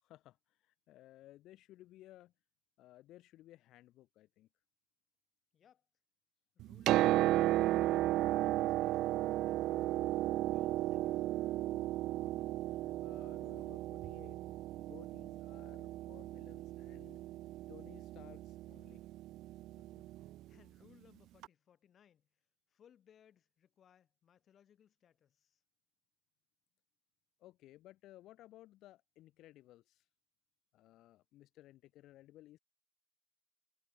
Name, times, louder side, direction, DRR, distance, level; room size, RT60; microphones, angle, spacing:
voice 1, 0.0-2.3 2.8-4.5 12.2-14.4 14.8-17.2 17.7-19.1 27.4-30.0 30.7-32.6, left 15 dB, 70° left, 5.0 m, -59 dB
voice 2, 5.5-5.9 6.6-7.8 8.3-10.1 10.5-11.3 19.8-25.6, left 9 dB, 40° left, 5.3 m, -67 dB
Piano, 6.6-20.3 21.4-21.5, right 15 dB, 70° right, 0.3 m, -34 dB
cardioid pair, 150°, 0 cm